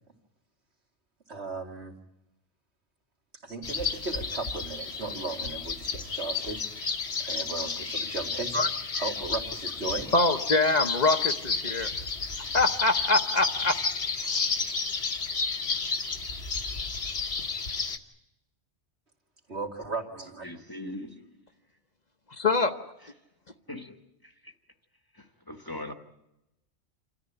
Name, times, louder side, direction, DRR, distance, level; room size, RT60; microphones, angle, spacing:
voice 1, 1.3-1.9 3.4-6.9 7.2-8.6 8.9-10.1 19.5-20.5, right 3 dB, 70° right, 3.0 m, -36 dB
sound 1, 3.6-18.0, left 4 dB, 65° left, 1.6 m, -31 dB
voice 2, 10.1-11.9 12.5-13.7 14.2-14.4 22.3-22.7, left 3 dB, 40° left, 1.0 m, -24 dB
voice 3, 20.4-21.2 23.7-24.0 24.2-24.5 25.1-25.9, left 1 dB, 20° left, 1.2 m, -40 dB
27.5 x 14.0 x 10.0 m
omnidirectional pair, 1.2 m